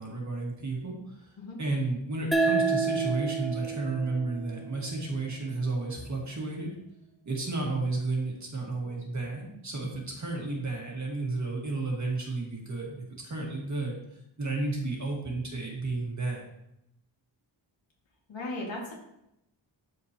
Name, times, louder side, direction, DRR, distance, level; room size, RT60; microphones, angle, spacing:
voice 1, 0.0-1.3 1.6-6.7 7.3-14.0 14.4-16.4, right 3 dB, 40° right, -2 dB, 1.8 m, -32 dB
sound 1, 2.3-5.5, right 4 dB, ahead, 0.6 m, -29 dB
voice 2, 18.3-18.9, left 2 dB, 75° left, -2 dB, 2.2 m, -37 dB
12.5 x 4.5 x 2.9 m, 0.83 s
wide cardioid pair, 155°, 45 cm